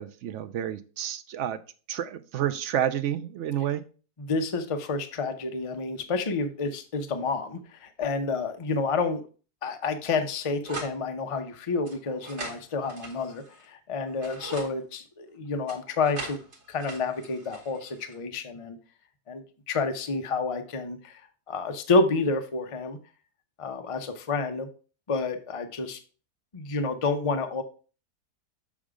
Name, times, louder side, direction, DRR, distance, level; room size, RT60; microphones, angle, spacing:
voice 1, 0.0-1.6 1.9-3.8, right 10 dB, 65° right, 11 dB, 0.7 m, -30 dB
voice 2, 4.2-9.2 9.6-16.4 16.7-18.8 19.3-21.2 21.5-23.0 23.6-24.7 25.1-26.0 26.5-27.6, left 3 dB, 35° left, 6 dB, 0.5 m, -29 dB
sound 1, 10.7-11.0 11.9-13.6 14.1-14.7 15.7-18.1, right 3 dB, 45° right, 2.0 m, -41 dB
7.2 x 3.7 x 4.9 m, 0.37 s
omnidirectional pair, 1.6 m